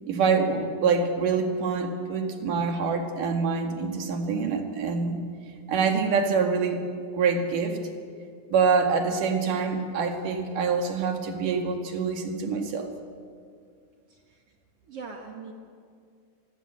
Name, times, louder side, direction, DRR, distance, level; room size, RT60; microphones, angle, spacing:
voice 1, 0.1-5.2 5.7-6.8 7.1-7.8 8.5-12.9, right 5 dB, 85° right, 4 dB, 3.6 m, -25 dB
voice 2, 14.1-14.4 14.8-15.5, right 4 dB, 50° right, 2 dB, 2.6 m, -41 dB
24.5 x 20.0 x 7.7 m, 2.2 s
omnidirectional pair, 3.6 m